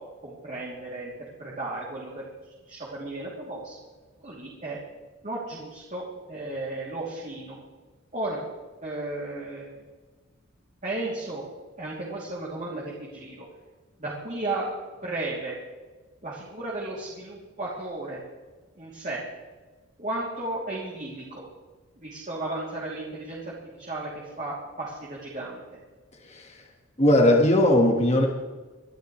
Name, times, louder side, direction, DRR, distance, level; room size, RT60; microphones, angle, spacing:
voice 1, 0.2-1.1 1.4-2.2 2.7-3.8 4.2-4.8 5.2-7.6 8.1-8.4 8.8-9.8 10.8-11.4 11.8-13.4 14.0-14.7 15.0-15.6 16.2-18.2 18.8-19.2 20.0-21.4 22.0-23.4 23.8-24.1 24.4-24.9 25.2-25.6, right 2 dB, 35° right, -5 dB, 3.0 m, -34 dB
voice 2, 26.3-26.6 27.0-28.3, left 1 dB, 30° left, 1 dB, 1.6 m, -19 dB
24.5 x 12.5 x 3.3 m, 1.3 s
head